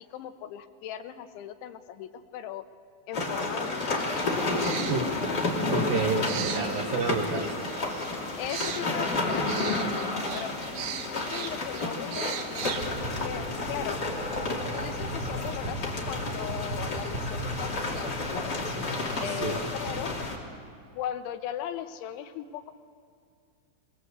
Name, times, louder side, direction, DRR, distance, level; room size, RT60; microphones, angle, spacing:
voice 1, 0.0-2.7 3.1-4.1 8.4-10.6 11.1-14.0 14.7-18.9 19.2-20.1 20.9-22.7, left 11 dB, 80° left, 8 dB, 3.2 m, -38 dB
sound 1, 3.1-20.4, left 2 dB, 30° left, 2.1 m, -31 dB
sound 2, 4.1-13.1, right 8 dB, 85° right, 3.8 m, -40 dB
voice 2, 4.9-5.2 5.7-7.6 19.4-19.6, right 4 dB, 70° right, 2 dB, 2.2 m, -29 dB
sound 3, 12.6-20.2, right 1 dB, 15° right, 6.7 m, -38 dB
23.0 x 22.0 x 8.1 m, 2.3 s
omnidirectional pair, 5.5 m